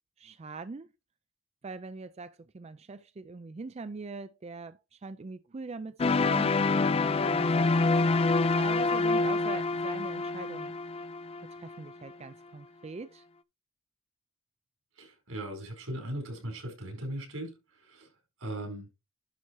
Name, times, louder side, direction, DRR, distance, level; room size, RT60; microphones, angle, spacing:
voice 1, 0.2-0.9 1.6-6.6 7.2-8.3 8.5-10.8 11.5-13.3, right 3 dB, 30° right, 0.4 m, -42 dB
sound 1, 6.0-11.9, left 3 dB, 30° left, 0.4 m, -27 dB
voice 2, 14.9-18.9, right 1 dB, 80° right, 4.9 m, -39 dB
11.0 x 4.2 x 4.6 m
head